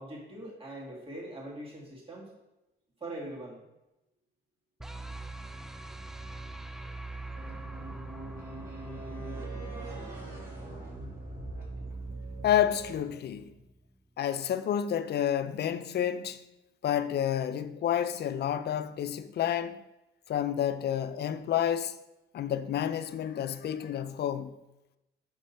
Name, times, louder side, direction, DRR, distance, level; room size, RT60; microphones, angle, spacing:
voice 1, 0.0-2.3 3.0-3.6, right 1 dB, 30° right, 2.2 m, -42 dB
sound 1, 4.8-13.9, right 3 dB, ahead, 0.4 m, -42 dB
sound 2, 7.3-13.0, right 2 dB, 45° right, 2.6 m, -45 dB
voice 2, 12.4-13.5 14.2-16.4 16.8-19.8 20.3-22.0 22.3-24.5, left 10 dB, 55° left, 0.5 m, -29 dB
6.3 x 5.3 x 4.2 m
cardioid pair, 90°, 20 cm